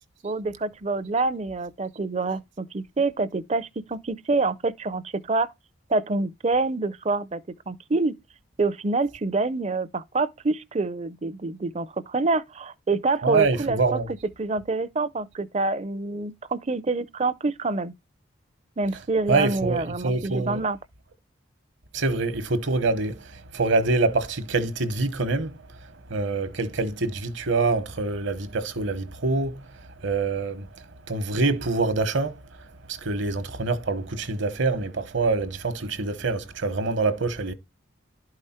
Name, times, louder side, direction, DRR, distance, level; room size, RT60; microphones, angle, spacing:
voice 1, 0.2-5.5 5.9-7.4 7.7-8.2 8.6-14.0 14.4-17.9 18.8-20.8, right 3 dB, 30° right, 0.5 m, -26 dB
voice 2, 13.2-14.1 19.3-20.6 21.9-25.5 26.1-29.6 30.0-30.7 31.1-32.4 32.9-37.5, right 3 dB, 65° right, 1.0 m, -25 dB
11.5 x 4.8 x 4.3 m
head